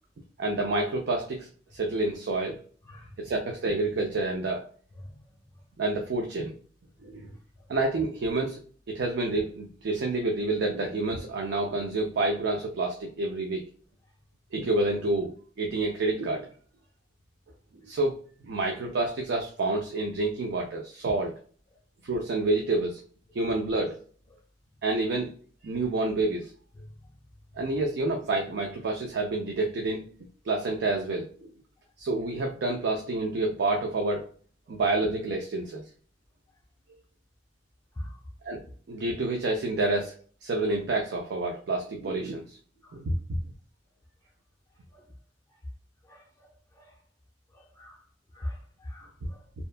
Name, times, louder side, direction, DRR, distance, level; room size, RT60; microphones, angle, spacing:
voice 1, 0.4-2.6 3.2-4.7 5.8-6.6 7.0-7.3 7.7-8.6 8.9-13.7 14.5-16.5 17.8-18.2 18.4-21.3 22.0-23.0 23.3-24.0 24.8-25.3 25.6-26.5 27.6-30.1 30.5-31.5 32.0-34.3 34.7-35.8 38.4-40.2 40.4-42.6 42.9-43.4, right 2 dB, 65° right, 0.4 m, -28 dB
voice 2, 2.9-3.3 5.1-5.2 34.7-34.8 38.0-38.2 42.8-42.9 44.9-45.0 46.1-46.2 46.8-46.9 47.5-48.0 48.3-49.4, left 1 dB, 15° left, 0.5 m, -41 dB
2.7 x 2.2 x 2.4 m
head